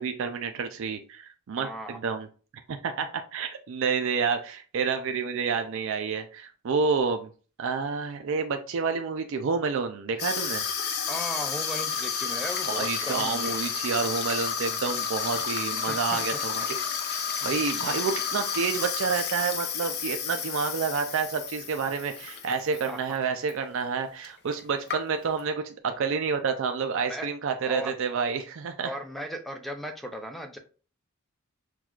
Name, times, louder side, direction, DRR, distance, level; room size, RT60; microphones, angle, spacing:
voice 1, 0.0-2.3 2.7-7.3 7.6-10.7 12.3-16.8 17.0-28.9, right 5 dB, 65° right, 6 dB, 0.4 m, -29 dB
voice 2, 1.6-2.0 11.1-13.6 15.9-16.2 17.9-18.0 22.9-23.0 27.1-27.3 27.6-27.9 28.8-30.6, equal, ahead, 5 dB, 0.4 m, -36 dB
Water tap faucet / Sink (filling or washing), 10.2-22.9 23.2-23.5 24.2-24.3 24.5-25.4, left 7 dB, 50° left, 0.6 m, -31 dB
5.9 x 2.3 x 2.3 m, 0.37 s
head